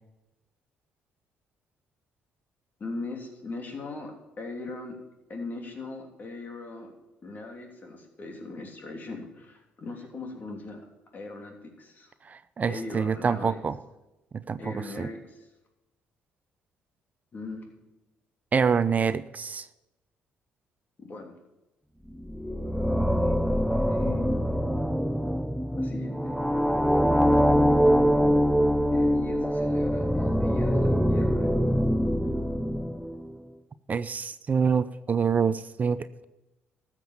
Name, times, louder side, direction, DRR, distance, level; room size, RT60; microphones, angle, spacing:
voice 1, 2.8-5.0 5.3-6.9 7.2-10.9 11.1-12.1 12.7-13.6 14.6-15.5 17.3-17.6 21.0-21.3 23.8-24.4 25.7-26.4 28.9-31.6, left 3 dB, 45° left, 2 dB, 3.1 m, -40 dB
voice 2, 12.2-13.8 14.3-15.1 18.5-19.7 33.9-36.2, right 6 dB, 40° right, 14 dB, 0.6 m, -26 dB
sound 1, 22.1-33.3, equal, ahead, 0.8 m, -24 dB
13.5 x 7.5 x 7.1 m, 0.98 s
supercardioid pair, 65°, 4 cm